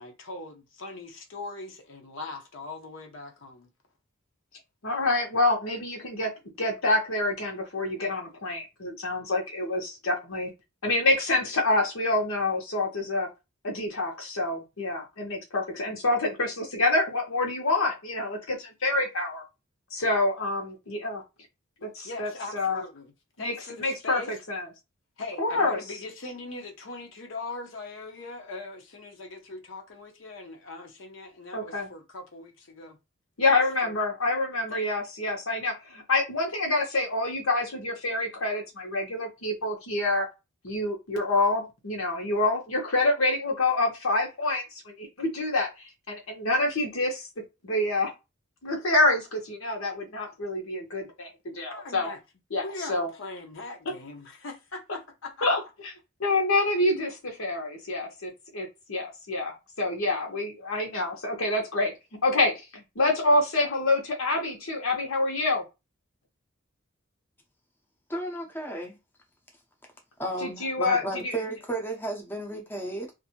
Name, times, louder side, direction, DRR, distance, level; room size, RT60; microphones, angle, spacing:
voice 1, 0.0-3.7 21.8-23.1 23.4-24.3 25.2-33.0 33.4-33.9 34.7-34.9 51.7-52.2 52.6-55.5, left 3 dB, 65° left, 0.7 m, -41 dB
voice 2, 4.8-6.3 6.6-10.5 10.8-13.3 13.6-19.4 19.9-21.2 21.8-22.8 23.4-23.5 23.8-24.7 25.4-25.8 31.5-31.9 33.4-40.3 40.6-47.3 47.6-48.1 48.6-52.1 52.5-53.1 55.4-55.6 56.2-61.9 62.2-65.6 70.4-71.4, left 2 dB, 85° left, 1.1 m, -27 dB
voice 3, 68.1-69.0 70.2-73.1, right 1 dB, 10° left, 0.6 m, -33 dB
2.6 x 2.5 x 2.8 m
head